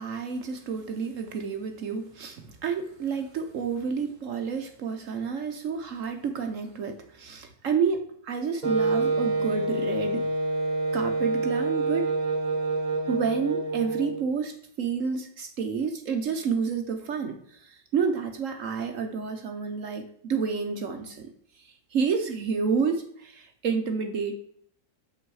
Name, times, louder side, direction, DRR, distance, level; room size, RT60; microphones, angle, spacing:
voice 1, 0.0-10.3 10.9-12.1 13.1-21.3 21.5-24.3, right 5 dB, 60° right, 5 dB, 0.9 m, -30 dB
Wind instrument woodwind instrument, 8.6-14.3, right 2 dB, 30° right, 0.9 m, -27 dB
6.9 x 5.8 x 4.7 m, 0.64 s
omnidirectional pair, 1.9 m